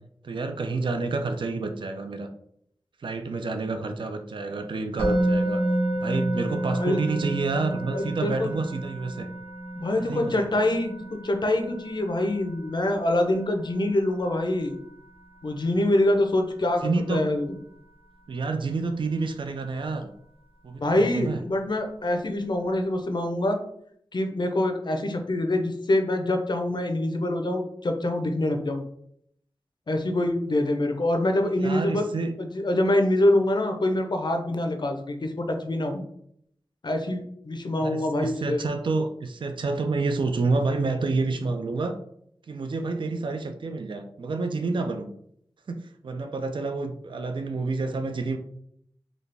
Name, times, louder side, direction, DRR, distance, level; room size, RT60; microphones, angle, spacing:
voice 1, 0.2-2.3 3.0-5.6 5.9-9.3 10.0-10.5 16.8-17.2 18.3-20.1 20.6-21.4 31.6-32.3 37.8-42.0 42.5-45.1 45.7-48.4, right 3 dB, 60° right, 7 dB, 0.4 m, -29 dB
Musical instrument, 5.0-16.1, right 1 dB, 90° right, 1.3 m, -31 dB
voice 2, 7.9-8.5 9.7-10.9 11.2-14.7 15.4-17.6 20.8-23.6 24.1-28.8 29.9-32.1 32.4-36.0 36.8-38.7, left 1 dB, 50° left, 4 dB, 0.6 m, -25 dB
4.0 x 2.3 x 3.3 m, 0.69 s
wide cardioid pair, 85°, 10 cm